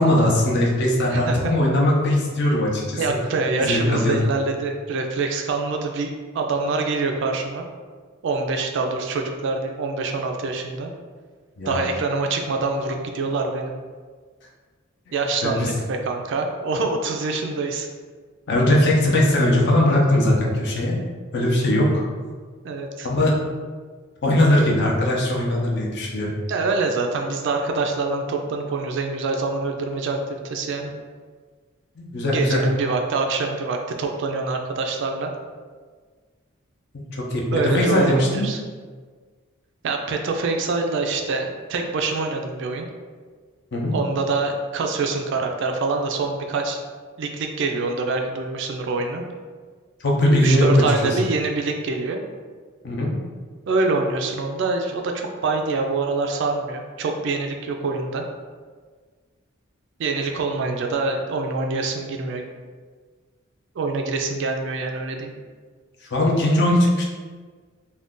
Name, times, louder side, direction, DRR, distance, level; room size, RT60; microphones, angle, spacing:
voice 1, 0.0-3.0 3.6-4.2 11.6-11.9 15.1-15.2 15.4-15.7 18.5-20.9 21.3-22.0 23.0-23.3 24.2-26.3 32.0-32.6 36.9-38.4 43.7-43.9 50.0-51.2 52.8-53.1 66.0-67.0, left 1 dB, 55° left, -2 dB, 0.5 m, -20 dB
voice 2, 1.1-1.5 3.0-7.6 8.2-10.9 11.7-13.7 15.1-17.9 22.6-23.1 26.5-30.9 32.3-35.3 37.5-38.6 39.8-42.9 43.9-46.8 47.2-49.2 50.3-52.2 53.7-58.2 60.0-62.5 63.8-65.3, right 3 dB, 60° right, 3 dB, 0.3 m, -25 dB
2.5 x 2.2 x 3.5 m, 1.5 s
head